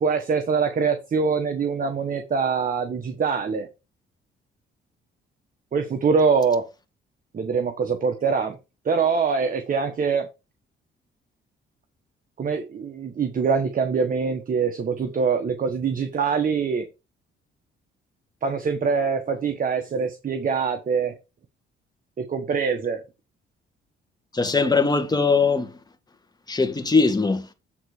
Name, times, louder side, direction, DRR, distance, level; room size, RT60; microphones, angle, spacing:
voice 1, 0.0-3.7 5.7-6.6 7.3-8.6 8.8-10.3 12.4-16.9 18.4-21.1 22.2-23.0, right 5 dB, 45° right, 1.3 m, -24 dB
voice 2, 24.3-25.7 26.5-27.5, left 4 dB, 20° left, 1.6 m, -21 dB
8.7 x 4.0 x 4.9 m
cardioid pair, 90°, 20 cm